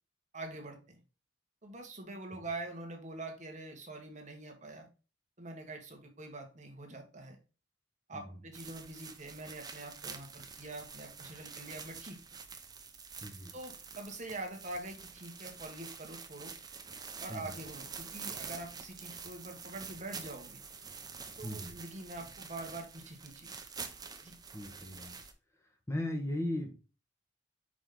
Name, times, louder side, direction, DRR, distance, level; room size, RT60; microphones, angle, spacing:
voice 1, 0.3-1.0 1.6-4.9 5.4-7.4 8.1-12.2 13.5-16.5 17.2-20.6 21.4-23.5 24.2-24.3, right 2 dB, 40° right, 3 dB, 1.5 m, -45 dB
sound 1, 8.5-25.3, right 5 dB, 20° right, 0.7 m, -47 dB
voice 2, 13.2-13.5 17.3-17.5 21.4-21.7 24.5-25.2 25.9-26.8, left 1 dB, 15° left, 2 dB, 1.1 m, -37 dB
5.3 x 5.1 x 3.8 m, 0.33 s
head